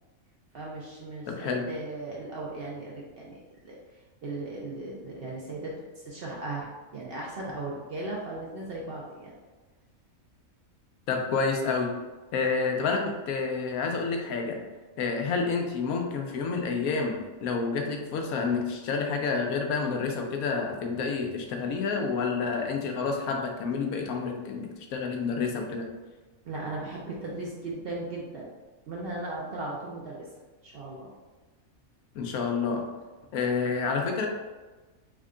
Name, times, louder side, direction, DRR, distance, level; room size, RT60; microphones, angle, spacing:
voice 1, 0.5-3.8 4.2-6.7 6.9-9.3 26.5-28.5 28.9-30.3 30.6-31.1, right 2 dB, 60° right, -4 dB, 0.7 m, -37 dB
voice 2, 1.3-1.7 11.1-11.9 12.3-14.6 15.0-25.8 32.2-32.9 33.3-34.3, left 4 dB, 85° left, 2 dB, 1.0 m, -29 dB
3.5 x 2.2 x 3.6 m, 1.2 s
omnidirectional pair, 1.5 m